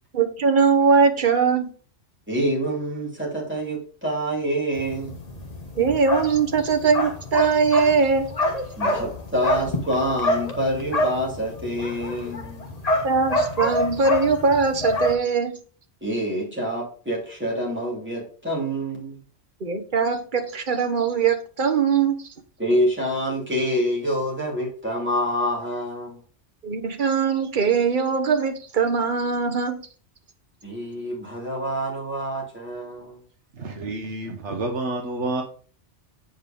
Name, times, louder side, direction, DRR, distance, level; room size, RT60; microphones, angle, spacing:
voice 1, 0.1-1.7 5.8-8.3 13.0-15.6 19.6-22.1 26.6-29.8, right 5 dB, 45° right, 1.2 m, -21 dB
voice 2, 2.3-5.2 8.8-12.7 16.0-19.2 22.6-26.2 30.6-33.2, equal, 10° right, 3.0 m, -26 dB
sound 1, 4.7-15.1, left 1 dB, 35° left, 1.4 m, -27 dB
voice 3, 33.6-35.4, right 2 dB, 70° right, 1.3 m, -29 dB
8.0 x 5.0 x 5.2 m
omnidirectional pair, 1.2 m